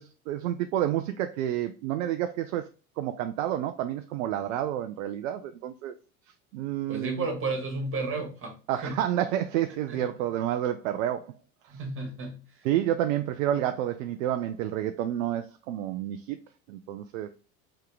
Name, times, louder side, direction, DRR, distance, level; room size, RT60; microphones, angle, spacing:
voice 1, 0.0-2.7 3.0-5.9 6.5-7.3 8.7-11.3 11.7-11.8 12.6-16.4 16.7-17.3, right 11 dB, 60° right, 0.5 m, -29 dB
voice 2, 6.9-8.6 8.8-9.0 9.9-10.0 11.7-12.4, right 3 dB, 25° right, 1.4 m, -32 dB
3.6 x 2.9 x 3.4 m
figure-of-eight pair, 75°, 46 cm